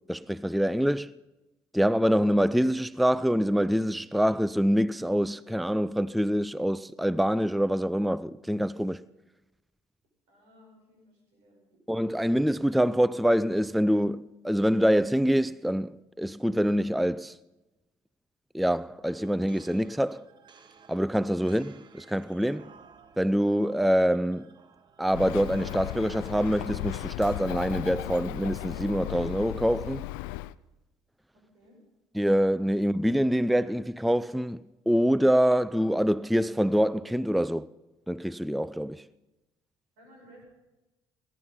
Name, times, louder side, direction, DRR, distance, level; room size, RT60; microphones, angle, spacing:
voice 1, 0.1-1.1 1.7-9.0 11.9-17.4 18.5-20.2 20.9-22.7 23.2-24.5 25.0-30.1 32.2-37.7 38.1-39.1, equal, ahead, 0.4 m, -25 dB
voice 2, 10.3-11.6 31.5-31.8 40.0-40.4, equal, 80° right, 7.1 m, -56 dB
sound 1, 19.1-28.3, right 6 dB, 40° right, 1.2 m, -56 dB
Bird, 25.1-30.5, left 15 dB, 85° left, 0.4 m, -36 dB
18.5 x 11.5 x 5.6 m
hypercardioid pair, 65°, 11 cm